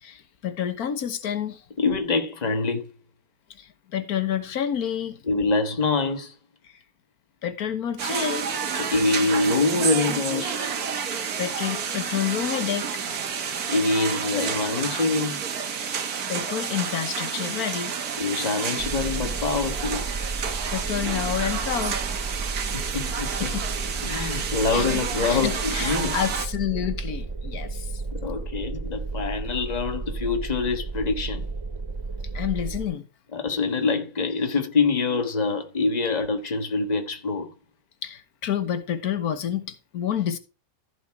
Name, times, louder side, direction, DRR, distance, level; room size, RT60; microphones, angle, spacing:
voice 1, 0.0-1.6 3.5-5.2 6.6-6.7 7.4-8.5 10.9-11.1 11.4-13.0 15.8-17.9 20.4-22.0 22.9-23.0 23.4-23.6 24.7-25.0 25.3-28.0 32.3-33.1 34.5-34.6 38.0-40.4, left 9 dB, 85° left, 1.6 m, -29 dB
voice 2, 1.8-2.9 5.3-6.4 8.7-10.7 13.7-15.4 18.2-20.0 22.7-23.5 24.0-26.2 28.1-31.5 33.3-37.5, left 4 dB, 30° left, 1.5 m, -25 dB
sound 1, 8.0-26.5, right 7 dB, 85° right, 1.7 m, -30 dB
sound 2, 18.8-32.9, right 3 dB, 30° right, 0.5 m, -33 dB
14.5 x 5.1 x 4.6 m
omnidirectional pair, 1.5 m